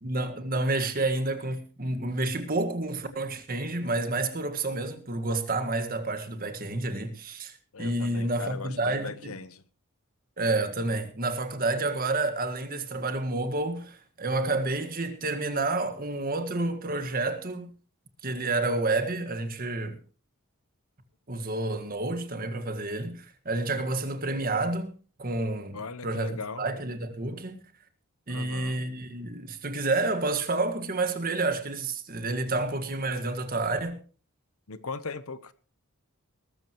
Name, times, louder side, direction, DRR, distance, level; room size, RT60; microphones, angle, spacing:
voice 1, 0.0-9.3 10.4-17.7 18.2-20.0 21.3-24.9 25.2-25.8 26.0-27.6 28.3-34.0, right 2 dB, 40° right, 1.8 m, -29 dB
voice 2, 7.7-9.6 25.7-26.6 28.3-28.9 34.7-35.5, left 4 dB, 75° left, 1.0 m, -39 dB
19.5 x 14.0 x 3.1 m
head